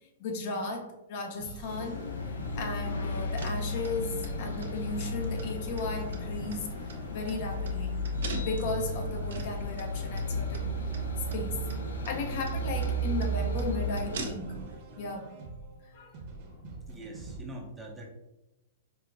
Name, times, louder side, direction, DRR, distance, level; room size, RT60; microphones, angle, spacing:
voice 1, 0.2-6.8 7.1-8.0 8.4-10.7 11.3-11.7 12.1-14.6 15.0-15.3 15.9-16.1, left 3 dB, 50° left, 3 dB, 0.7 m, -36 dB
sound 1, 1.4-17.4, right 2 dB, 40° right, 1.0 m, -46 dB
sound 2, 1.7-14.3, equal, 90° left, 0.5 m, -34 dB
sound 3, 2.4-14.8, right 3 dB, 80° right, 0.7 m, -43 dB
voice 2, 16.9-18.1, right 1 dB, 10° right, 0 dB, 0.6 m, -43 dB
4.8 x 2.5 x 2.5 m, 0.95 s
hypercardioid pair, 145°, 0 cm